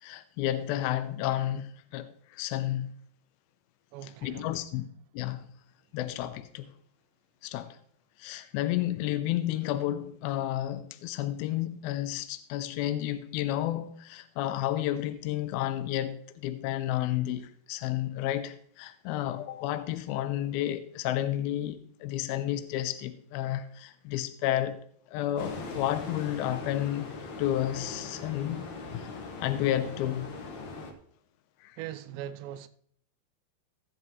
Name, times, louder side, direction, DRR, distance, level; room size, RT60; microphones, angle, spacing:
voice 1, 0.0-2.9 4.0-4.9 5.1-5.5 5.9-6.7 7.4-7.8 8.2-24.8 25.1-27.1 27.4-28.7 28.9-29.1 29.4-30.3 31.6-31.8, left 13 dB, 85° left, 2.2 m, -31 dB
voice 2, 3.9-4.7 31.8-32.7, right 11 dB, 90° right, 2.9 m, -40 dB
sound 1, 25.4-30.9, left 3 dB, 60° left, 2.1 m, -40 dB
17.0 x 7.7 x 3.1 m
omnidirectional pair, 4.9 m